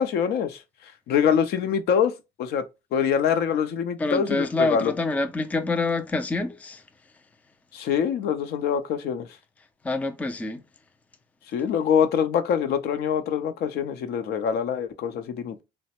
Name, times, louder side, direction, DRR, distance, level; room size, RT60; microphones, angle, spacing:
voice 1, 0.0-2.1 2.4-2.6 2.9-4.9 7.7-9.3 11.5-15.6, left 7 dB, 70° left, 0.6 m, -24 dB
voice 2, 4.0-6.8 9.8-10.6, left 3 dB, 10° left, 0.3 m, -26 dB
3.1 x 2.1 x 2.8 m
cardioid pair, 110°, 17 cm